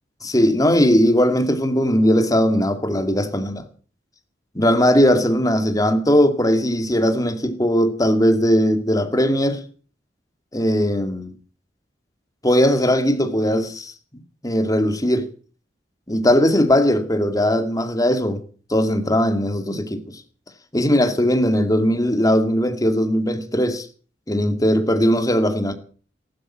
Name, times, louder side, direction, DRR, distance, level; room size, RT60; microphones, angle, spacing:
voice 1, 0.2-3.6 4.5-9.6 10.5-11.3 12.4-13.9 14.4-15.3 16.1-18.4 18.7-20.2 20.7-23.9 24.3-25.7, equal, 20° left, 2.5 m, -19 dB
15.0 x 12.5 x 7.4 m
head